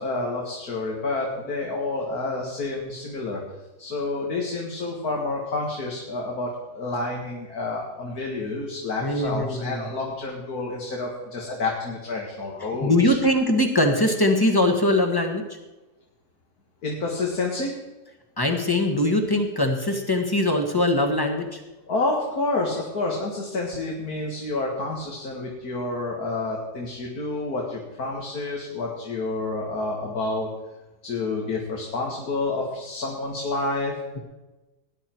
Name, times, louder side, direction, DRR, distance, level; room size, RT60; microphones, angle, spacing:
voice 1, 0.0-3.4 3.8-13.2 16.8-17.8 21.9-30.5 31.0-34.0, left 3 dB, 60° left, -1 dB, 2.3 m, -29 dB
voice 2, 9.0-9.8 12.8-15.4 18.4-21.6, left 1 dB, 15° left, 4 dB, 1.5 m, -21 dB
19.0 x 10.5 x 4.6 m, 1.1 s
omnidirectional pair, 1.9 m